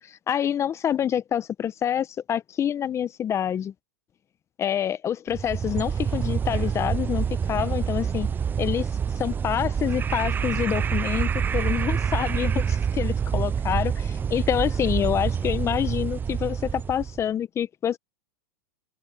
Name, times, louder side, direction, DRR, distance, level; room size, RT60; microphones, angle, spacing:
voice 1, 0.1-3.7 4.6-8.3 8.6-8.9 9.2-18.0, left 9 dB, 25° left, 1.1 m, -27 dB
sound 1, 5.3-17.2, right 7 dB, 20° right, 0.6 m, -27 dB
hypercardioid pair, 115°, 11 cm